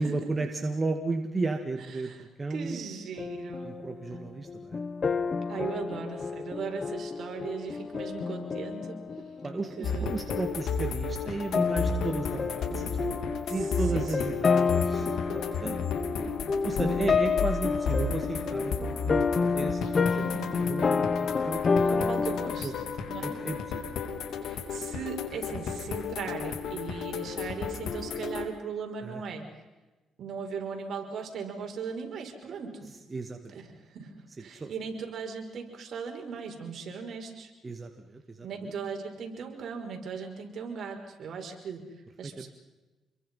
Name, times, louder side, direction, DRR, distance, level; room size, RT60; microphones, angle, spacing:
voice 1, 0.0-2.8 3.6-4.8 9.4-15.8 16.1-16.3 16.6-20.3 20.6-22.0 22.6-22.9 23.2-23.8 29.0-29.2 33.1-33.6 34.4-34.7 37.6-38.7 42.2-42.5, right 3 dB, 25° right, 5 dB, 2.2 m, -34 dB
voice 2, 2.5-3.8 5.5-9.0 9.8-10.2 13.5-13.6 13.9-14.3 20.2-20.6 21.8-22.7 23.1-23.4 24.4-29.4 30.2-32.9 33.5-37.5 38.4-41.8 42.2-42.5, right 5 dB, 60° right, 2 dB, 5.9 m, -38 dB
sound 1, 3.2-10.0 10.3-10.6 11.5-22.5, left 5 dB, 40° left, 1.2 m, -29 dB
sound 2, 9.8-28.4, left 5 dB, 75° left, 2.9 m, -33 dB
28.5 x 22.5 x 5.7 m, 1.1 s
cardioid pair, 90°, 0 cm